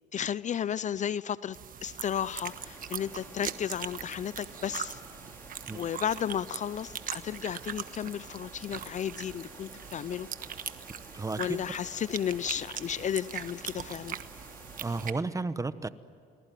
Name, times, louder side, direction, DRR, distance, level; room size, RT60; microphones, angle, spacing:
voice 1, 0.1-5.0 5.7-10.3 11.4-14.2, left 9 dB, 40° left, 19 dB, 0.6 m, -33 dB
sound 1, 1.5-15.1, right 9 dB, 50° right, 1.3 m, -41 dB
sound 2, 2.4-15.2, left 1 dB, 10° left, 4.3 m, -52 dB
voice 2, 11.1-11.6 14.8-15.9, right 3 dB, 15° right, 14 dB, 1.1 m, -32 dB
29.0 x 20.0 x 9.3 m, 2.5 s
supercardioid pair, 85°, 18 cm